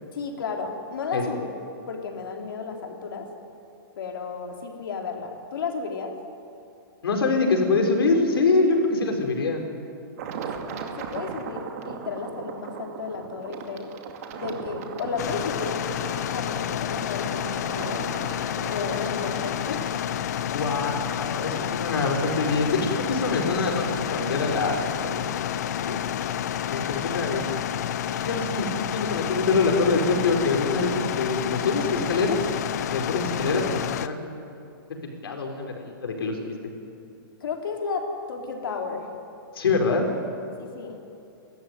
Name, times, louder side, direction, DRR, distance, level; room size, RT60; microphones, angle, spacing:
voice 1, 0.1-1.4 1.9-3.3 4.0-6.1 10.7-13.9 14.4-15.8 16.3-18.1 18.7-19.9 37.4-39.1 40.6-41.0, left 5 dB, 70° left, 2 dB, 4.1 m, -33 dB
voice 2, 7.0-9.6 20.5-24.8 25.0-25.3 25.8-26.0 26.7-27.5 28.2-32.4 32.9-34.4 35.2-36.7 39.6-40.1, left 3 dB, 85° left, 3 dB, 5.3 m, -25 dB
sound 1, 10.2-20.0, right 6 dB, 40° right, 2.4 m, -37 dB
sound 2, 15.2-34.1, left 10 dB, 45° left, 0.9 m, -29 dB
30.0 x 14.0 x 9.5 m, 2.7 s
hypercardioid pair, 170°, 12 cm